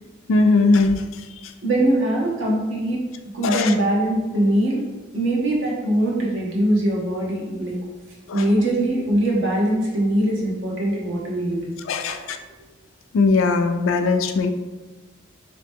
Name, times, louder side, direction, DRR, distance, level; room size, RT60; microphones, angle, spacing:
voice 1, 0.3-1.0 3.4-3.7 8.3-8.4 11.9-12.4 13.1-14.5, left 3 dB, 90° left, 7 dB, 0.4 m, -19 dB
voice 2, 1.6-3.0 3.3-4.8 5.1-7.7 8.3-11.7 12.1-12.3, right 1 dB, 80° right, -2 dB, 1.0 m, -22 dB
3.1 x 2.9 x 3.5 m, 1.2 s
head